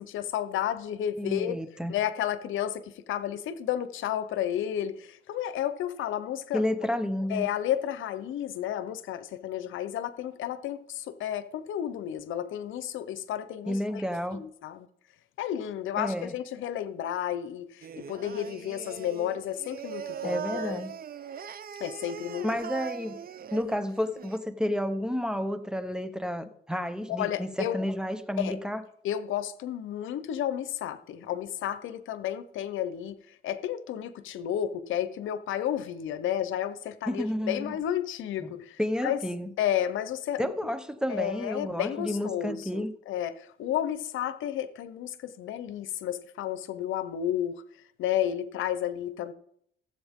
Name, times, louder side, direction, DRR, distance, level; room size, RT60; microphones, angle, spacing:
voice 1, 0.0-1.6 1.9-6.6 7.3-14.0 14.3-14.9 15.4-20.8 21.8-22.5 27.1-27.8 28.4-28.6 29.0-33.2 33.4-39.2 39.6-40.5 41.1-47.6 48.0-49.3, left 10 dB, 80° left, 0.8 m, -32 dB
voice 2, 1.2-1.9 6.5-7.5 13.7-14.4 16.0-16.3 20.2-20.9 22.4-23.2 23.5-28.8 37.1-37.8 38.4-38.5 38.8-39.5 40.4-42.9, left 1 dB, 5° right, 1.0 m, -31 dB
Singing, 17.8-24.4, right 8 dB, 50° right, 0.8 m, -40 dB
17.0 x 8.0 x 3.7 m
cardioid pair, 90°, 20 cm